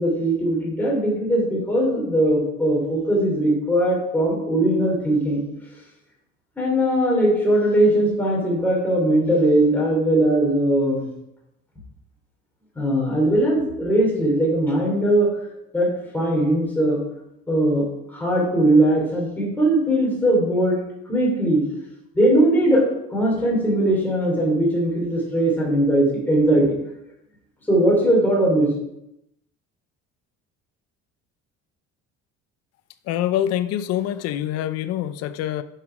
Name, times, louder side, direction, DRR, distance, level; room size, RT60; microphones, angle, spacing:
voice 1, 0.0-5.4 6.6-11.1 12.8-15.3 15.7-17.0 17.5-20.8 21.1-21.6 22.1-26.7 27.7-28.7, right 1 dB, 5° left, -3 dB, 3.0 m, -20 dB
voice 2, 33.1-35.6, left 11 dB, 55° left, 12 dB, 0.6 m, -25 dB
10.5 x 5.7 x 4.9 m, 0.83 s
cardioid pair, 170°, 29 cm